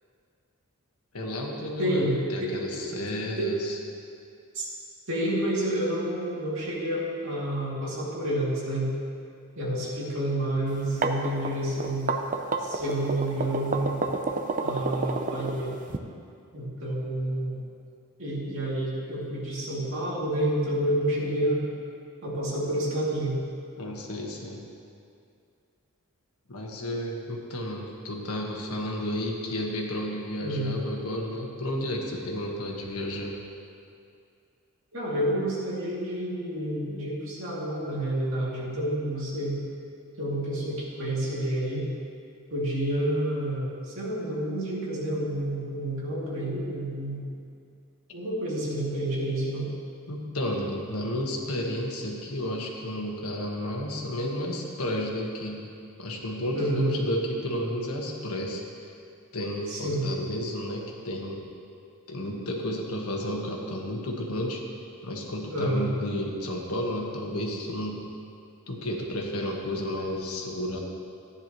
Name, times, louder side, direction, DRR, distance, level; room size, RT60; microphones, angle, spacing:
voice 1, 1.1-3.8 23.8-24.6 26.5-33.4 50.1-55.7 56.0-58.9 59.3-61.4 62.1-64.6 65.0-68.1 68.7-70.8, left 1 dB, 80° left, 0 dB, 1.5 m, -32 dB
voice 2, 1.8-3.5 4.5-4.7 5.1-8.9 9.6-12.1 12.6-14.0 14.6-15.8 16.5-17.6 18.2-21.6 22.2-23.3 30.4-30.7 34.9-39.6 40.2-41.8 42.5-47.2 48.1-49.7 56.5-56.9 59.7-60.0 65.5-65.9, right 1 dB, 60° right, -6 dB, 2.6 m, -29 dB
sound 1, 10.7-16.0, right 3 dB, 35° right, 0.6 m, -29 dB
14.0 x 9.8 x 3.1 m, 2.4 s
head